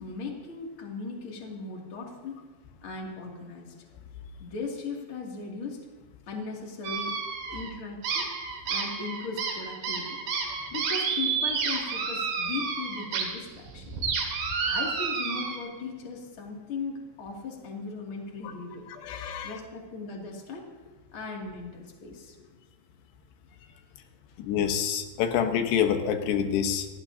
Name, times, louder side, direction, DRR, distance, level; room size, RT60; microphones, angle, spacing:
voice 1, 0.0-2.4 2.8-3.7 4.4-5.8 6.3-7.1 7.5-8.3 8.6-10.2 10.7-13.9 14.7-18.8 19.4-20.6 21.1-22.4, left 4 dB, 35° left, -1 dB, 2.9 m, -38 dB
sound 1, 6.8-7.7 8.0-13.2 13.6-15.6, right 5 dB, 90° right, 4.4 m, -30 dB
voice 2, 18.9-19.6 24.4-26.9, left 8 dB, 80° left, 6 dB, 3.2 m, -27 dB
27.0 x 18.0 x 2.8 m, 1.2 s
omnidirectional pair, 4.9 m